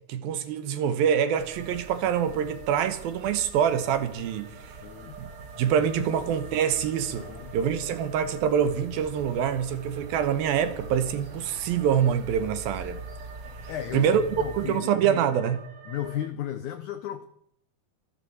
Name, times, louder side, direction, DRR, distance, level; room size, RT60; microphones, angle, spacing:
voice 1, 0.1-4.5 5.2-5.3 5.6-7.3 7.5-13.0 13.9-14.2 14.5-15.6, right 8 dB, 75° right, 2.7 m, -25 dB
sound 1, 1.2-16.3, right 6 dB, 90° right, 3.8 m, -48 dB
sound 2, 1.3-14.8, right 1 dB, 35° right, 1.5 m, -44 dB
voice 2, 4.8-5.2 6.0-6.1 7.1-7.5 13.7-15.2 15.8-17.3, left 11 dB, 90° left, 1.7 m, -35 dB
26.0 x 13.0 x 4.3 m
omnidirectional pair, 4.7 m